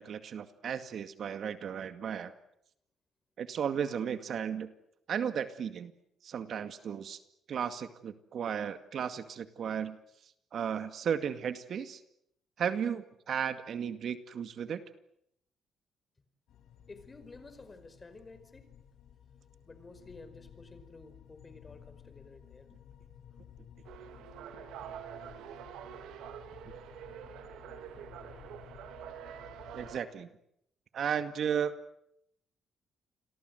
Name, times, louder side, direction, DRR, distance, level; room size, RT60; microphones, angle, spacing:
voice 1, 0.0-2.3 3.4-4.7 5.1-5.9 6.2-7.2 7.5-10.0 10.5-12.0 12.6-14.8 29.7-30.3 30.9-31.7, right 8 dB, 60° right, 10 dB, 2.1 m, -34 dB
sound 1, 16.5-30.0, left 9 dB, 80° left, 6.5 m, -55 dB
voice 2, 16.9-18.7 19.7-22.7 23.3-23.4 23.9-24.0, left 3 dB, 30° left, 11 dB, 5.2 m, -52 dB
sound 2, 23.8-30.0, right 9 dB, 85° right, 2.9 m, -46 dB
29.0 x 23.0 x 8.0 m, 0.76 s
cardioid pair, 90°, 0 cm